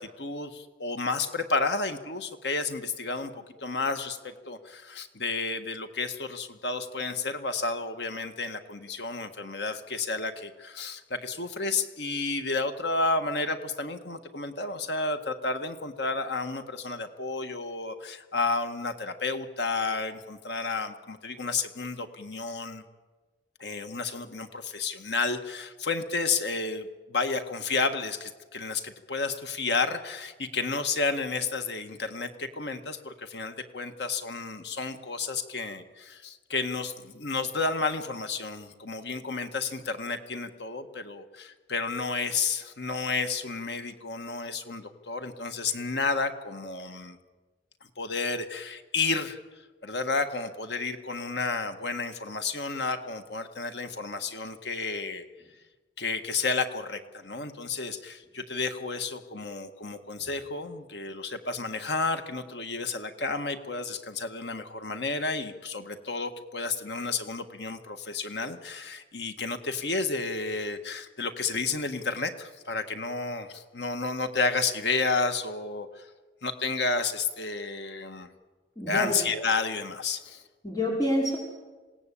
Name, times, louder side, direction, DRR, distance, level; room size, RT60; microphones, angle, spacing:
voice 1, 0.0-22.8 23.6-47.2 48.0-49.4 49.8-55.2 56.0-76.1 76.4-78.3 78.9-80.4, left 4 dB, 70° left, 7 dB, 1.7 m, -31 dB
voice 2, 78.8-79.2 80.6-81.4, left 1 dB, 20° left, -2 dB, 5.5 m, -27 dB
27.0 x 18.5 x 8.6 m, 1.3 s
head